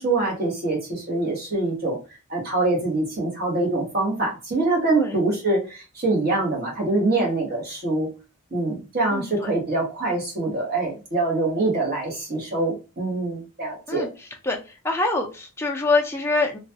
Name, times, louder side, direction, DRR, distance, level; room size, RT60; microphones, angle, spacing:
voice 1, 0.0-2.0 2.3-8.1 8.5-14.1, right 2 dB, 45° right, -2 dB, 1.4 m, -24 dB
voice 2, 9.1-9.5 13.9-14.1 14.4-14.6 14.8-16.6, left 3 dB, 10° left, 1 dB, 0.4 m, -24 dB
3.0 x 2.2 x 2.8 m, 0.31 s
head